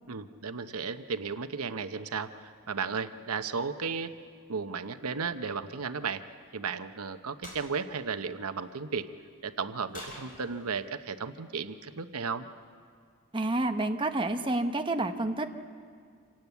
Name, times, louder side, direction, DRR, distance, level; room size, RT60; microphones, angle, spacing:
voice 1, 0.1-4.1 4.5-6.2 6.5-9.0 9.4-12.5, right 5 dB, 85° right, 10 dB, 0.9 m, -34 dB
sound 1, 7.4-7.7 9.9-10.9, left 1 dB, 40° left, 5.3 m, -45 dB
voice 2, 13.3-15.5, right 2 dB, 20° right, 5 dB, 0.9 m, -29 dB
27.0 x 18.0 x 8.3 m, 2.1 s
head